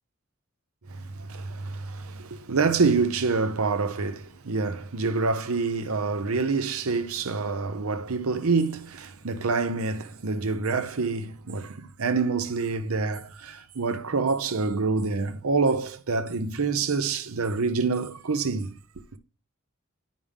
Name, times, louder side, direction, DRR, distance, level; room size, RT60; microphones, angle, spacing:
voice 1, 0.9-18.8, right 4 dB, 75° right, 0.7 m, -27 dB
8.6 x 5.1 x 3.5 m
head